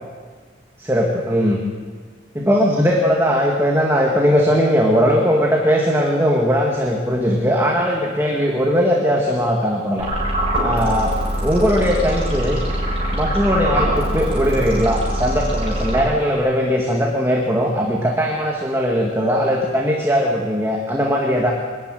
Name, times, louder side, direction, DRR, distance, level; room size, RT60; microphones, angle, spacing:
voice 1, 0.8-1.6 2.3-10.1 10.6-11.2 11.4-12.6 13.1-21.5, equal, 15° right, -1 dB, 2.0 m, -19 dB
sound 1, 10.0-16.5, equal, 30° right, 6.5 m, -23 dB
24.0 x 13.0 x 9.2 m, 1.5 s
head